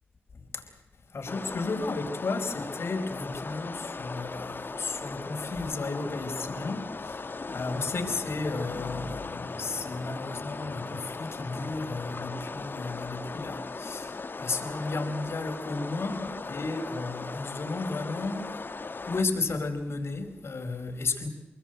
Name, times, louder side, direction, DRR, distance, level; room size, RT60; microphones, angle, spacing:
voice 1, 1.1-18.5 19.1-21.3, left 3 dB, 70° left, 4.5 m, -33 dB
sound 1, 1.3-19.2, left 3 dB, 50° left, 1.3 m, -38 dB
26.5 x 21.0 x 7.9 m
cardioid pair, 50°, 4 cm